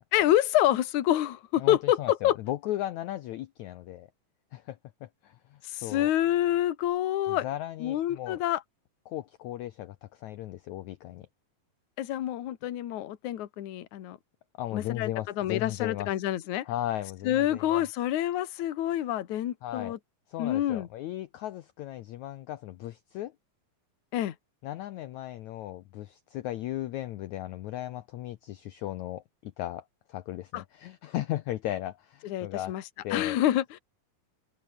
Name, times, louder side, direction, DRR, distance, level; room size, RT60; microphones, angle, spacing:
voice 1, 0.1-2.4 5.7-7.5 7.8-8.6 12.0-14.2 14.7-15.1 15.4-16.7 17.2-20.0 20.4-20.9 24.1-24.3 30.5-30.6 32.2-32.8 33.1-33.8, left 12 dB, 60° left, 2.6 m, -27 dB
voice 2, 1.6-4.1 4.5-6.1 7.3-8.4 9.1-11.3 14.6-16.1 16.6-17.8 19.6-20.0 20.3-23.3 24.6-32.7 33.0-33.4, left 14 dB, 85° left, 1.6 m, -36 dB
open air
omnidirectional pair, 4.4 m